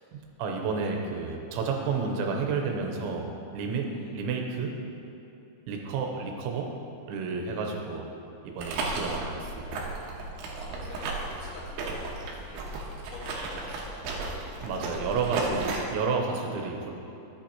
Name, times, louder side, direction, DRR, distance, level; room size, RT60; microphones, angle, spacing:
voice 1, 0.1-3.9 4.1-4.7 5.7-6.7 7.1-8.1 8.4-9.7 14.6-16.9, right 4 dB, 90° right, 2 dB, 3.1 m, -31 dB
sound 1, 8.6-15.8, right 3 dB, 75° right, 2.7 m, -34 dB
voice 2, 10.5-12.7 13.1-15.0 15.3-15.7 16.3-16.5, left 2 dB, 75° left, -4 dB, 3.9 m, -47 dB
13.0 x 8.3 x 2.9 m, 3.0 s
omnidirectional pair, 5.4 m